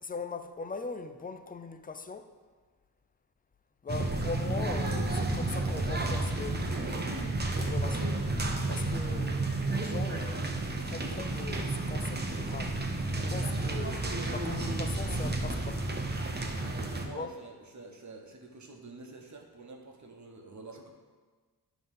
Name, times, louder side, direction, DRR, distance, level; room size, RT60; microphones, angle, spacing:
voice 1, 0.0-2.3 3.8-8.2 8.7-12.8 13.2-14.0 14.3-16.0 17.0-17.3, left 4 dB, 25° left, 0.4 m, -41 dB
sound 1, 3.9-17.1, right 2 dB, 25° right, 0.7 m, -31 dB
voice 2, 8.4-9.3 13.7-14.4 16.5-20.9, right 3 dB, 45° right, 1.1 m, -48 dB
11.0 x 3.9 x 5.4 m
wide cardioid pair, 155°, 40 cm